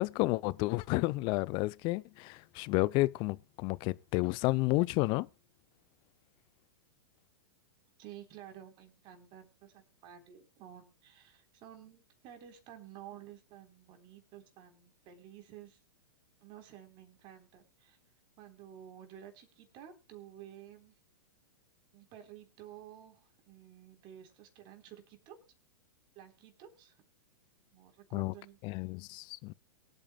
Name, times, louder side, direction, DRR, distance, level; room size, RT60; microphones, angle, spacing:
voice 1, 0.0-5.3 28.1-28.3 28.6-29.5, left 21 dB, 40° left, 0.6 m, -31 dB
voice 2, 8.0-15.8 16.4-18.0 18.4-21.0 21.9-25.4 26.2-27.1 27.7-28.6, right 10 dB, 40° right, 3.7 m, -52 dB
23.0 x 8.8 x 2.2 m
hypercardioid pair, 105°, 13 cm